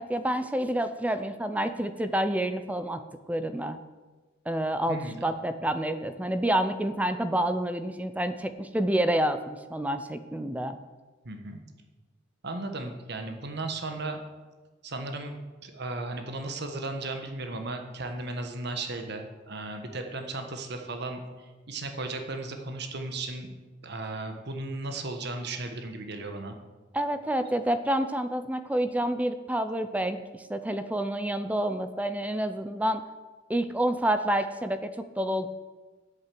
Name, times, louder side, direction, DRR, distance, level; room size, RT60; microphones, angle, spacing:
voice 1, 0.0-3.8 4.5-10.8 26.9-33.0 33.5-35.5, right 1 dB, 10° right, 10 dB, 0.5 m, -28 dB
voice 2, 4.9-5.3 11.2-11.6 12.4-14.2 14.8-15.3 15.6-23.5 23.8-26.5, right 2 dB, 60° right, 6 dB, 1.4 m, -35 dB
8.6 x 8.2 x 7.6 m, 1.3 s
head